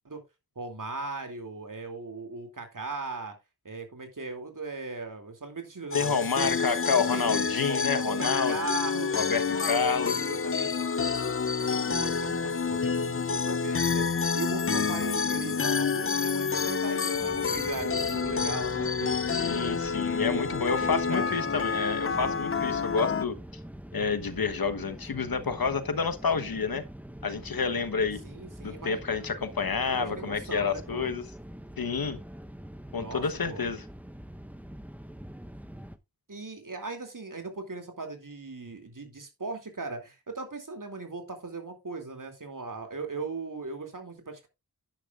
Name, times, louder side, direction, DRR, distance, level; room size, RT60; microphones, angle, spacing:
voice 1, 0.6-3.3 3.6-6.5 6.9-11.0 11.6-19.5 20.2-21.4 28.2-29.0 29.9-31.1 32.9-33.6 36.3-44.5, right 3 dB, 60° right, 2.8 m, -38 dB
voice 2, 5.9-8.5 9.1-10.2 19.3-23.3 23.9-26.8 27.2-28.2 28.6-31.2 31.8-32.2 32.9-33.8, left 5 dB, 75° left, 1.2 m, -29 dB
sound 1, 5.9-23.3, left 5 dB, 35° left, 0.5 m, -28 dB
sound 2, 17.1-36.0, equal, 5° right, 0.9 m, -44 dB
10.5 x 10.0 x 2.5 m
wide cardioid pair, 60°, 36 cm